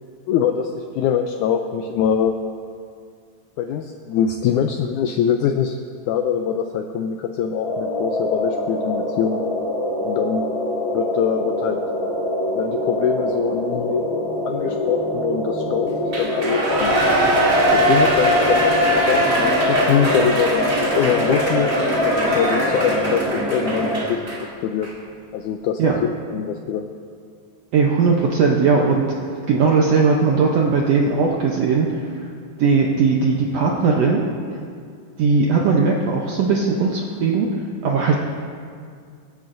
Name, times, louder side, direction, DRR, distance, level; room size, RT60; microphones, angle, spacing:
voice 1, 0.3-2.4 3.6-5.8 6.1-9.5 10.0-10.5 10.9-11.8 12.5-14.0 14.5-17.0 17.7-21.7 22.0-24.2 24.6-24.9 25.3-26.9, left 8 dB, 85° left, 6 dB, 1.7 m, -23 dB
sound 1, 7.6-24.1, left 1 dB, 45° left, 3.6 m, -25 dB
Shout / Cheering, 16.1-24.4 24.8-24.9, equal, 30° right, 1.9 m, -20 dB
voice 2, 27.7-32.3 32.6-34.2 35.2-37.5 37.8-38.2, right 4 dB, 75° right, -1 dB, 1.5 m, -18 dB
25.5 x 10.5 x 2.6 m, 2.2 s
omnidirectional pair, 4.0 m